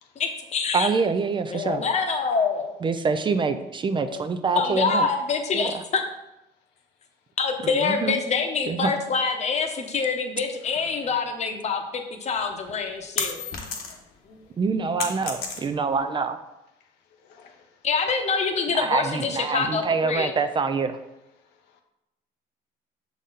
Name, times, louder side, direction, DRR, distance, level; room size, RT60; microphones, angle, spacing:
voice 1, 0.2-0.9 1.5-2.7 4.1-4.2 4.6-6.0 7.4-13.4 14.2-14.4 17.8-20.3, left 5 dB, 40° left, 0.9 m, -26 dB
voice 2, 0.7-1.9 2.8-5.1 5.5-5.7 7.6-8.2 8.7-8.9 14.6-16.4 18.7-21.0, right 5 dB, 30° right, 0.4 m, -25 dB
voice 3, 10.7-11.1 13.9-14.1 17.2-17.8 21.4-21.8, left 6 dB, 90° left, 0.8 m, -54 dB
sound 1, 12.4-14.2 14.5-16.0, left 5 dB, 65° left, 1.2 m, -32 dB
6.3 x 4.1 x 3.9 m
cardioid pair, 110°, 17 cm